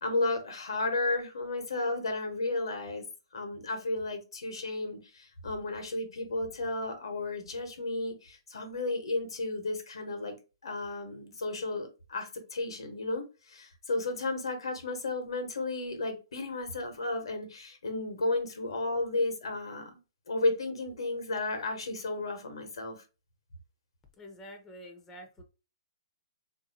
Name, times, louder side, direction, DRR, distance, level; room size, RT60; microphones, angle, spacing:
voice 1, 0.0-3.0 3.3-10.4 10.6-20.0 20.3-23.0, left 2 dB, 80° left, 1.1 m, -33 dB
voice 2, 24.2-25.4, equal, 15° left, 0.7 m, -47 dB
3.6 x 2.7 x 2.7 m
hypercardioid pair, 130°, 3 cm